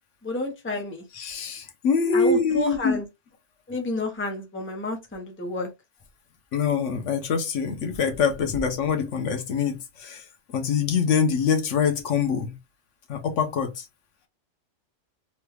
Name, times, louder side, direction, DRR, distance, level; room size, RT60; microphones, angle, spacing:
voice 1, 0.2-1.0 2.1-3.0 3.7-5.7, left 2 dB, 10° left, 0.7 m, -30 dB
voice 2, 1.1-3.0 6.5-10.2 10.5-12.5 13.1-13.8, left 6 dB, 75° left, 1.1 m, -24 dB
3.3 x 2.3 x 3.1 m
omnidirectional pair, 1.2 m